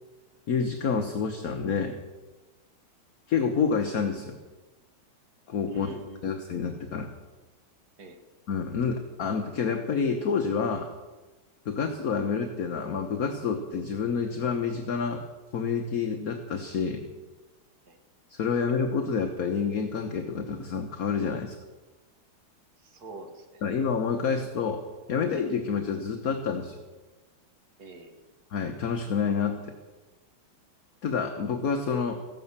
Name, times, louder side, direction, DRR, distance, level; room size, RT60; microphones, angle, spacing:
voice 1, 0.5-2.0 3.3-4.4 5.5-5.9 6.2-7.1 8.5-10.9 11.6-15.2 15.5-17.1 18.3-21.6 23.6-24.8 25.1-26.8 28.5-29.6 31.0-32.2, left 5 dB, 50° left, 4 dB, 1.3 m, -28 dB
voice 2, 5.7-6.4 8.0-8.2 17.9-18.0 18.5-18.6 22.8-23.6 27.8-28.3, right 1 dB, 50° right, 5 dB, 2.1 m, -44 dB
15.0 x 11.0 x 7.3 m, 1.2 s
omnidirectional pair, 2.3 m